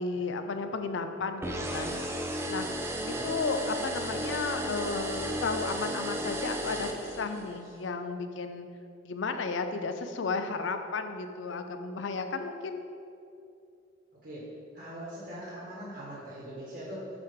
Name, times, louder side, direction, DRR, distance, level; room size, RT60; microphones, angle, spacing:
voice 1, 0.0-2.0 2.5-2.7 3.1-8.7 9.0-12.8, left 4 dB, 85° left, 7 dB, 0.5 m, -33 dB
sound 1, 1.4-7.6, right 1 dB, 15° right, 0.4 m, -34 dB
voice 2, 14.7-17.1, equal, 60° right, -7 dB, 1.4 m, -41 dB
7.4 x 4.8 x 3.6 m, 2.6 s
head